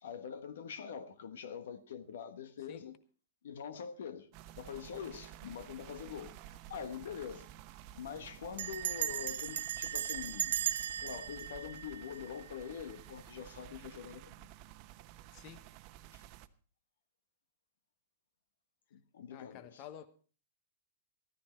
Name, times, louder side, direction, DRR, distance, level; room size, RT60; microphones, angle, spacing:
voice 1, 0.0-3.0 3.4-7.5 7.9-10.6 11.0-14.5 16.1-16.2 18.9-19.8, left 7 dB, 80° left, 1.2 m, -44 dB
sound 1, 4.3-16.5, right 12 dB, 45° right, 0.9 m, -53 dB
Bell, 6.5-6.8 7.1-7.2 7.4-7.8 8.6-12.7, right 10 dB, 75° right, 0.7 m, -37 dB
voice 2, 15.3-15.6 19.3-20.1, left 10 dB, 45° left, 1.1 m, -50 dB
14.5 x 13.5 x 4.4 m
hypercardioid pair, 125°, 0 cm